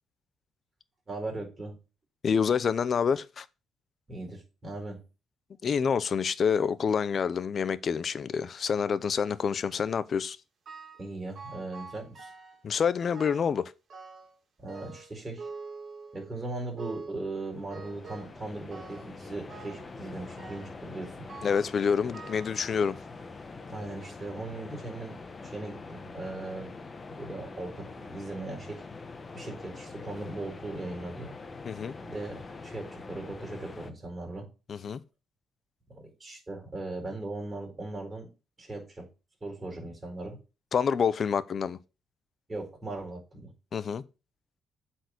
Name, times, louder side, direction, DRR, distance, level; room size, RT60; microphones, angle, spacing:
voice 1, 1.1-1.8 4.1-5.0 11.0-12.3 14.6-15.5 16.1-21.2 23.7-26.7 27.2-28.8 29.3-31.3 32.0-34.5 35.9-38.3 38.6-39.1 39.4-40.4 42.5-43.5, right 2 dB, 25° right, 4.2 m, -39 dB
voice 2, 2.2-3.4 5.6-10.4 12.6-13.7 21.4-23.0 31.7-32.0 34.7-35.0 40.7-41.8 43.7-44.0, left 6 dB, 50° left, 0.6 m, -27 dB
sound 1, 10.7-11.1 11.4-12.7 13.1-13.6 13.9-14.4 14.7-16.4 16.8-17.2 17.7-18.4 18.7-19.2 19.5-19.9 20.4-20.8 21.3-21.7 22.1-23.2 23.8-23.9 24.8-24.9 25.3-25.4, right 4 dB, 55° right, 2.6 m, -46 dB
sound 2, 17.2-33.9, left 3 dB, 30° left, 1.1 m, -44 dB
8.0 x 4.5 x 6.2 m
cardioid pair, 90°, 0 cm